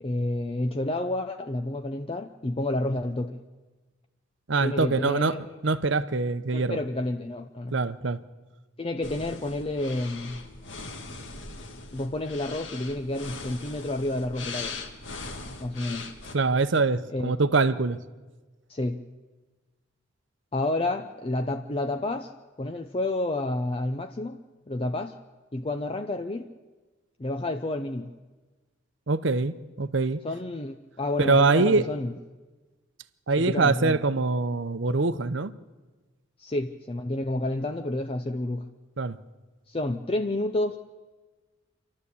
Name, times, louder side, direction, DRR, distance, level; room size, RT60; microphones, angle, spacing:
voice 1, 0.0-3.4 4.6-5.4 6.5-7.8 8.8-10.4 11.9-14.8 15.6-16.1 17.1-17.3 18.7-19.0 20.5-22.3 22.6-24.4 24.7-25.2 25.5-26.5 27.2-28.1 30.2-32.1 33.3-34.0 36.4-38.6 39.7-40.8, left 1 dB, 25° left, 6 dB, 0.6 m, -30 dB
voice 2, 4.5-5.4 5.6-6.8 7.7-8.2 16.3-18.0 29.1-30.2 31.2-31.9 33.3-35.5 39.0-39.2, right 3 dB, 65° right, 14 dB, 0.7 m, -24 dB
sound 1, 9.0-16.3, left 3 dB, 65° left, 1.9 m, -40 dB
27.5 x 12.0 x 8.4 m, 1.3 s
head